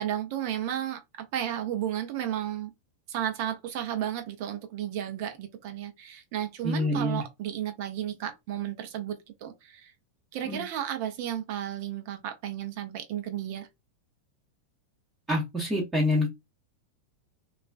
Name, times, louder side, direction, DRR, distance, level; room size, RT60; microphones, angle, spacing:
voice 1, 0.0-2.7 3.1-9.9 10.3-13.7, right 11 dB, 45° right, 0.6 m, -33 dB
voice 2, 6.6-7.2 10.4-10.6 15.3-16.3, left 1 dB, 15° right, 0.8 m, -26 dB
2.3 x 2.3 x 2.3 m
figure-of-eight pair, 90°, 0 cm